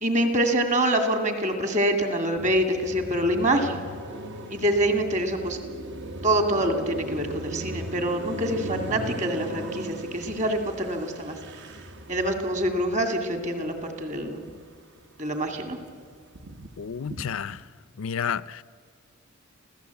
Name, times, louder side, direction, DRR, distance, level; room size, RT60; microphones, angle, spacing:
voice 1, 0.0-3.8 4.5-5.6 6.2-11.4 12.1-14.5 15.2-15.8, right 1 dB, 35° right, 2.4 m, -25 dB
Car passing by, 2.4-14.8 15.2-17.7, right 1 dB, 55° right, 1.4 m, -39 dB
voice 2, 16.8-17.7 18.0-18.6, left 7 dB, 65° left, 0.5 m, -31 dB
27.5 x 16.5 x 8.3 m
head